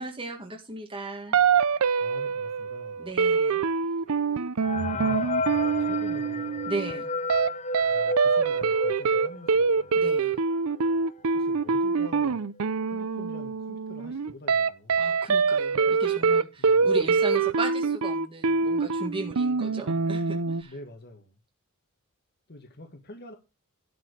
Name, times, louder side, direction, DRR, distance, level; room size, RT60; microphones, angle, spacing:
voice 1, 0.0-1.3 3.0-3.6 6.7-7.1 9.9-10.4 15.0-20.7, right 3 dB, 25° right, 1.8 m, -36 dB
sound 1, 1.3-6.9 7.3-7.5 7.7-20.6, right 5 dB, 70° right, 0.6 m, -25 dB
voice 2, 2.0-3.1 5.6-6.7 7.8-10.0 11.3-12.4 12.9-15.1 16.6-16.9 20.6-21.4 22.5-23.3, left 1 dB, 50° left, 1.7 m, -46 dB
sound 2, 4.6-10.0 10.5-10.6 10.8-10.9 11.7-11.8 12.1-12.5, left 2 dB, 30° left, 0.8 m, -32 dB
12.0 x 4.8 x 6.5 m
head